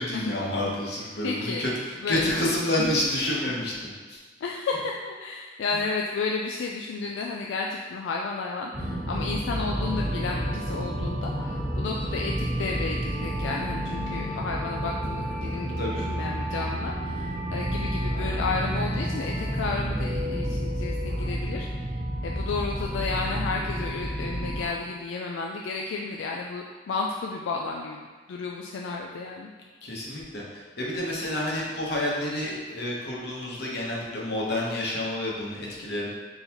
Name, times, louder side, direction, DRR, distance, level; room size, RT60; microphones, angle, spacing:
voice 1, 0.0-4.2 5.7-5.8 15.8-16.0 29.8-36.1, left 1 dB, 60° left, -4 dB, 1.0 m, -29 dB
voice 2, 1.2-1.7 2.0-2.2 3.5-3.6 4.4-21.7 22.2-29.5, left 4 dB, 85° left, 0 dB, 0.3 m, -32 dB
sound 1, 8.7-24.7, equal, 45° right, 1.0 m, -30 dB
4.0 x 3.9 x 2.9 m, 1.4 s
head